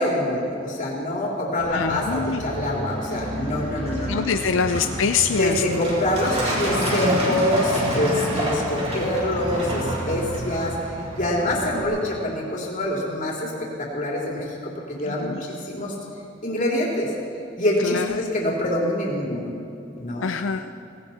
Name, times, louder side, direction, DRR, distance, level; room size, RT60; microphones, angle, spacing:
voice 1, 0.0-4.4 5.4-10.7 11.2-13.5 13.8-14.5 14.9-15.9 16.4-17.1 17.6-19.5 20.0-20.3, left 1 dB, 45° left, -2 dB, 3.4 m, -25 dB
Truck, 1.6-11.8, right 1 dB, 35° right, 3.7 m, -28 dB
voice 2, 1.7-2.4 4.1-5.8 6.8-6.9 7.2-7.4 15.0-15.4 17.8-18.2 20.2-20.6, left 5 dB, 90° left, 8 dB, 0.5 m, -25 dB
18.0 x 17.5 x 4.3 m, 2.8 s
head